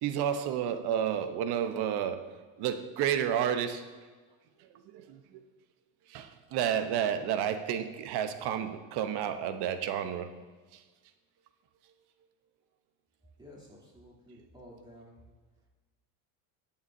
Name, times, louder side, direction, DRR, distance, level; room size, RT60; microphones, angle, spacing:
voice 1, 0.0-3.9 4.6-5.4 6.1-10.3 10.7-10.8, right 9 dB, 50° right, 9 dB, 0.9 m, -31 dB
voice 2, 13.4-15.1, equal, 10° right, -5 dB, 3.1 m, -52 dB
17.0 x 7.1 x 2.7 m, 1.4 s
cardioid pair, 135°, 49 cm